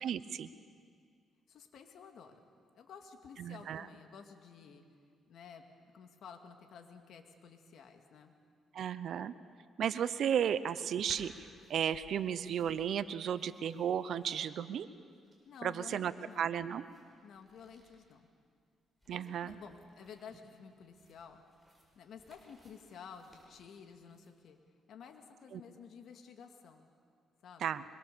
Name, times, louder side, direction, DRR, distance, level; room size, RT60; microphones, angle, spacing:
voice 1, 0.0-0.5 3.4-3.9 8.7-9.3 9.8-11.3 11.7-14.9 15.6-16.8 19.1-19.6 25.5-25.6 27.6-27.8, right 9 dB, 65° right, 14 dB, 0.9 m, -34 dB
voice 2, 1.5-2.3 2.7-4.8 5.3-5.6 5.9-8.3 15.4-16.5 17.2-18.3 19.1-21.4 22.0-24.6 24.9-26.9 27.4-27.8, left 6 dB, 70° left, 5 dB, 2.3 m, -52 dB
sound 1, 11.0-24.3, equal, 5° right, 6.3 m, -64 dB
24.0 x 22.0 x 7.0 m, 2.2 s
cardioid pair, 90°, 0 cm